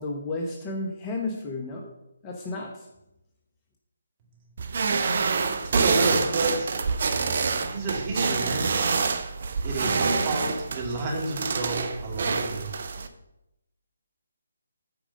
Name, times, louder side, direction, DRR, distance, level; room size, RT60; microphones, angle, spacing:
voice 1, 0.0-1.9 2.2-2.9, left 2 dB, 20° left, 0 dB, 1.1 m, -32 dB
sound 1, 4.6-13.1, right 4 dB, 50° right, 0.8 m, -26 dB
voice 2, 5.6-6.8 7.5-8.9 9.6-12.7, right 2 dB, 25° right, -2 dB, 2.3 m, -30 dB
8.8 x 5.0 x 6.5 m, 0.88 s
figure-of-eight pair, 145°, 0 cm